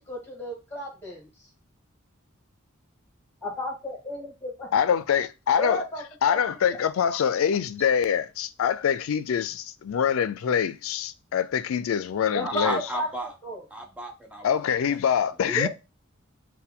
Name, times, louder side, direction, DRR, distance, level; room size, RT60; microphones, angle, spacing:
voice 1, 0.1-1.3 3.4-4.7 5.6-6.4 12.3-12.7 12.9-13.1 13.4-13.6 15.5-15.7, equal, 10° left, 1.5 m, -32 dB
voice 2, 4.7-5.8 6.2-12.8 14.4-15.7, left 8 dB, 75° left, 0.3 m, -25 dB
voice 3, 12.4-13.3 13.7-14.6 14.9-15.2, right 1 dB, 5° right, 0.5 m, -34 dB
4.4 x 2.2 x 3.6 m
head